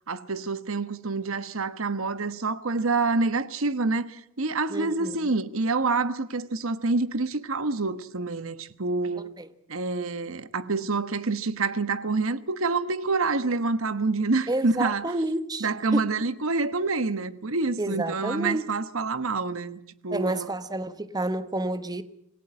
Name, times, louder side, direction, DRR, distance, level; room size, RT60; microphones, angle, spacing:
voice 1, 0.1-9.4 9.7-15.1 15.6-20.5, right 3 dB, 70° right, 1.2 m, -27 dB
voice 2, 4.7-5.2 9.2-9.5 14.5-15.7 15.9-16.1 17.8-18.6 20.1-22.0, right 1 dB, 20° right, 1.1 m, -29 dB
26.5 x 17.0 x 8.8 m
head